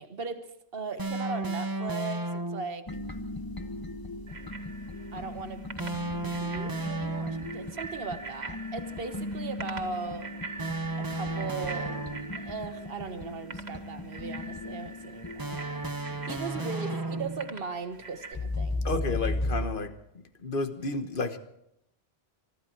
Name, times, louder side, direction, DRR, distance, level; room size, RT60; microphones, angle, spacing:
voice 1, 0.0-2.9 5.1-5.7 6.4-10.4 11.0-18.9, right 4 dB, 65° right, 8 dB, 1.5 m, -38 dB
sound 1, 1.0-2.8 5.8-7.7 10.6-12.5 15.4-17.6, right 2 dB, 20° right, 0.9 m, -34 dB
sound 2, 2.9-16.6 18.3-19.7, left 2 dB, 20° left, 1.0 m, -37 dB
Bicycle bell, 4.3-18.3, right 3 dB, 80° right, 2.1 m, -44 dB
voice 2, 18.8-19.9 20.4-21.4, left 3 dB, 55° left, 9 dB, 1.5 m, -31 dB
23.5 x 13.0 x 4.6 m, 0.79 s
omnidirectional pair, 1.1 m